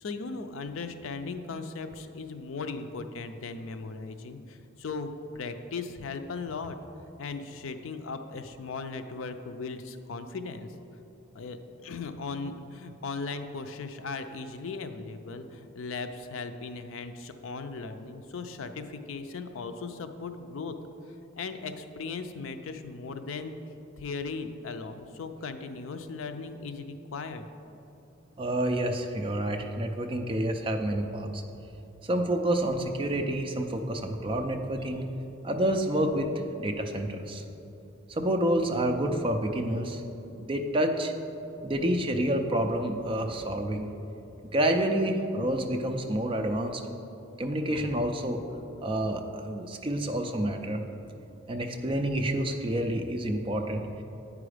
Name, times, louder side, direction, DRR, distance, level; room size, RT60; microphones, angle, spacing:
voice 1, 0.0-6.8 7.2-10.7 11.3-20.7 21.1-23.6 24.0-27.5, left 4 dB, 65° left, 8 dB, 0.4 m, -38 dB
voice 2, 28.4-31.4 32.0-35.1 35.4-36.3 36.6-37.4 38.1-40.0 40.4-41.1 41.6-43.9 44.5-46.8 47.4-48.4 48.8-50.8 51.5-53.8, right 1 dB, 25° right, 5 dB, 0.4 m, -28 dB
8.6 x 4.9 x 4.9 m, 2.9 s
head